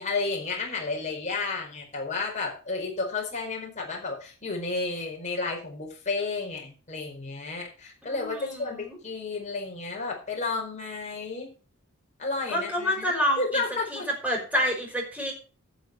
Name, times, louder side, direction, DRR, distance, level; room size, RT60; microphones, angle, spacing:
voice 1, 0.0-11.5 12.2-14.1, left 3 dB, 35° left, 0 dB, 4.6 m, -32 dB
voice 2, 8.1-9.0 12.5-13.4 13.9-15.3, equal, 5° right, 0 dB, 5.2 m, -28 dB
12.5 x 6.8 x 5.9 m, 0.36 s
head